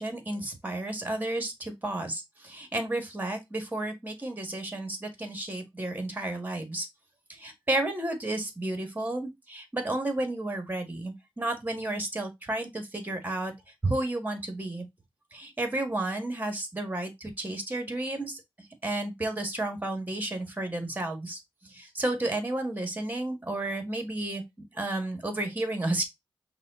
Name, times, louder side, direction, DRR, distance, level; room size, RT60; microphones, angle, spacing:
voice 1, 0.0-6.9 7.3-13.5 13.8-14.9 15.3-18.4 18.8-24.4 24.7-26.0, right 2 dB, 20° right, 1.6 m, -32 dB
5.6 x 2.4 x 3.6 m
wide cardioid pair, 90°, 9 cm